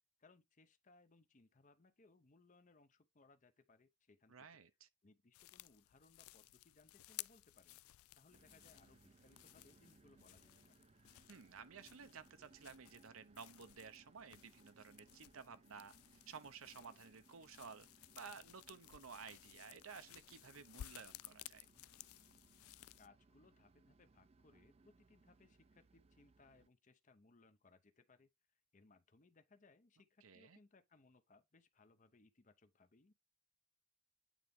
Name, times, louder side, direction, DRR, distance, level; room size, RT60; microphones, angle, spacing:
voice 1, 0.2-4.6 5.0-7.8 8.1-10.8 23.0-28.3 28.7-33.1, left 3 dB, 35° left, 0.7 m, -68 dB
voice 2, 4.3-4.9 11.3-17.9 18.2-21.7 30.2-30.6, right 6 dB, 85° right, 0.8 m, -55 dB
sound 1, 5.3-23.1, left 15 dB, 90° left, 0.3 m, -58 dB
sound 2, 8.3-26.7, right 3 dB, 30° right, 0.4 m, -69 dB
9.0 x 3.9 x 3.6 m
head